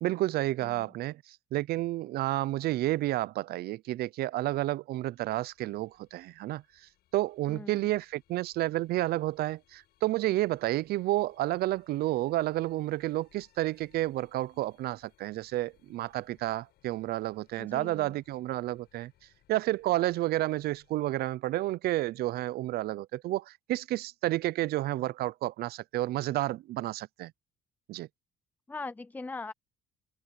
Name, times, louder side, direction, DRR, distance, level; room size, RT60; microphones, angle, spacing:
voice 1, 0.0-1.2 1.5-6.6 7.1-19.1 19.5-27.3 27.9-28.1, right 16 dB, 65° right, 0.5 m, -30 dB
sound 1, 4.9-21.1, left 14 dB, 75° left, 5.6 m, -69 dB
voice 2, 7.5-7.9 17.6-18.2 28.7-29.5, left 3 dB, 10° left, 0.4 m, -41 dB
open air
cardioid pair, 110°, 17 cm